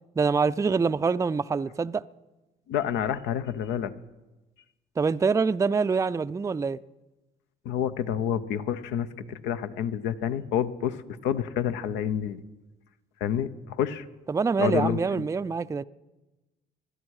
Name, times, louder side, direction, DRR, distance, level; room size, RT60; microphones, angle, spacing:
voice 1, 0.2-2.0 5.0-6.8 14.3-15.8, right 5 dB, 15° right, 0.4 m, -25 dB
voice 2, 2.7-3.9 7.6-11.0 11.2-12.4 13.2-14.1 14.6-15.2, left 9 dB, 75° left, 0.9 m, -28 dB
20.5 x 13.0 x 4.9 m
supercardioid pair, 65°, 19 cm